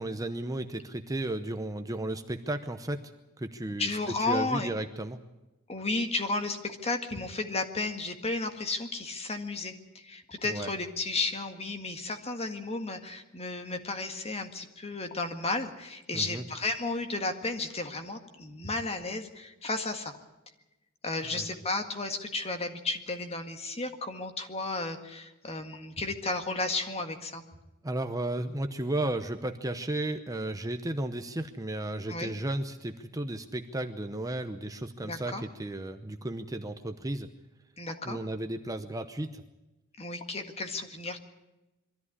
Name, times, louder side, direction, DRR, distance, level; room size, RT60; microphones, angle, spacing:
voice 1, 0.0-3.1 3.4-5.2 10.4-10.7 16.1-16.4 21.3-21.5 27.8-37.3 38.0-39.4, right 1 dB, 15° right, 7 dB, 0.8 m, -34 dB
voice 2, 3.8-4.7 5.7-20.1 21.0-27.4 32.1-32.3 35.0-35.4 37.8-38.2 40.0-41.2, left 3 dB, 30° left, 6 dB, 1.9 m, -33 dB
22.5 x 14.0 x 9.7 m, 1.0 s
head